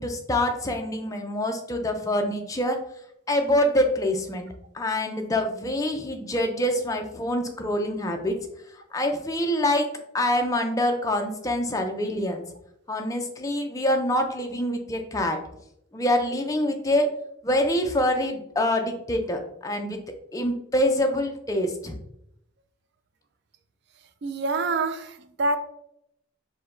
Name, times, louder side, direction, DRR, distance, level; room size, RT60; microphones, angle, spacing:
voice 1, 0.0-2.8 3.3-4.5 4.7-8.4 8.9-9.9 10.1-12.4 12.9-15.4 15.9-17.1 17.4-20.0 20.3-22.0, left 1 dB, 15° left, 4 dB, 0.4 m, -25 dB
voice 2, 24.2-25.6, right 3 dB, 55° right, 9 dB, 0.3 m, -26 dB
4.8 x 2.2 x 3.7 m, 0.76 s
head